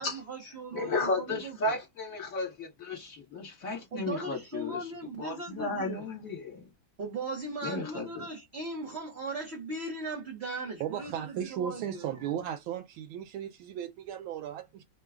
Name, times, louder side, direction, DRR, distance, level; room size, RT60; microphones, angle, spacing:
voice 1, 0.0-1.8 3.9-6.0 7.0-12.1, right 3 dB, 45° right, 0.9 m, -38 dB
voice 2, 0.7-4.9 5.2-6.7 7.6-8.3, left 3 dB, 45° left, 1.6 m, -34 dB
voice 3, 10.8-14.8, right 10 dB, 85° right, 1.4 m, -36 dB
3.6 x 2.2 x 3.4 m
omnidirectional pair, 2.2 m